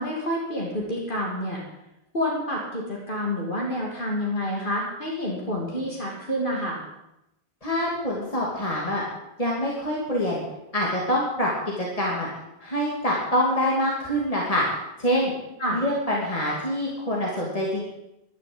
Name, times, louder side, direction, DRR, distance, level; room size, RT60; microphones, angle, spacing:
voice 1, 0.0-1.6 2.1-6.8 15.6-15.8, equal, 50° left, -2 dB, 3.0 m, -28 dB
voice 2, 7.6-9.0 9.4-10.4 10.7-12.3 12.6-14.6 15.0-15.3 15.7-17.8, equal, 35° left, -4 dB, 3.0 m, -25 dB
12.0 x 11.5 x 8.0 m, 0.87 s
omnidirectional pair, 1.1 m